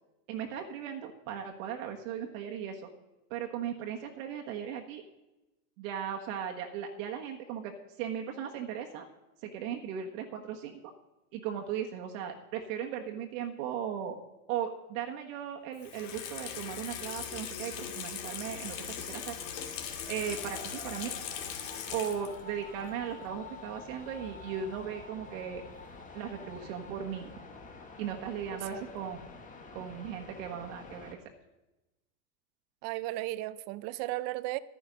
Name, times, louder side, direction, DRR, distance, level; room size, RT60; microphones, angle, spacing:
voice 1, 0.3-2.9 3.3-5.0 5.8-9.1 9.4-10.8 11.3-14.2 14.5-19.4 20.1-21.1 21.9-25.6 26.1-27.3 28.0-29.3 29.7-31.2, right 8 dB, 60° right, 2 dB, 1.4 m, -37 dB
Water tap faucet / Sink (filling or washing), 15.8-22.5 22.8-22.9, left 8 dB, 65° left, 2.3 m, -40 dB
sound 1, 18.4-31.2, left 3 dB, 15° left, 1.6 m, -48 dB
voice 2, 28.5-28.9 32.8-34.6, right 17 dB, 40° right, 17 dB, 0.5 m, -35 dB
11.5 x 10.0 x 5.2 m, 0.98 s
supercardioid pair, 130°, 44 cm